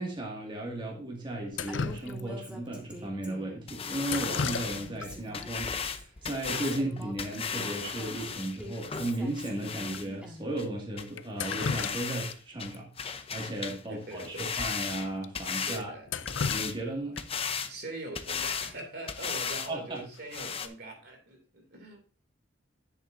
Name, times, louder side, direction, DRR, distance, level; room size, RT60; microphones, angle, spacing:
voice 1, 0.0-15.9 16.5-17.2 19.7-20.0, right 1 dB, 25° right, -1 dB, 2.1 m, -35 dB
Drip, 1.5-2.5 4.0-5.1 5.4-5.5 6.4-6.5 6.8-7.0 7.3-7.4 7.9-8.0 8.4-8.5 9.1-9.2 9.9-10.0 11.2-12.4 12.7-12.8 14.2-14.3 14.7-14.8 15.2-15.3 15.8-17.4 19.4-19.7 20.1-20.5, left 5 dB, 75° left, 0.5 m, -35 dB
Female speech woman speaking, 1.7-3.6 4.0-6.0 6.5-10.6, equal, 5° right, 1.9 m, -46 dB
sound 1, 3.7-10.1 10.6-10.7 11.0-11.1 11.4-12.3 12.6-13.8 14.1-15.8 16.3-16.8 17.2-17.7 18.1-18.7 19.1-19.7 20.0-20.1 20.3-20.7, left 6 dB, 30° left, 0.7 m, -35 dB
voice 2, 13.9-14.5 15.6-16.1 17.7-22.0, right 2 dB, 60° right, 4 dB, 2.7 m, -42 dB
10.0 x 8.0 x 2.7 m, 0.37 s
head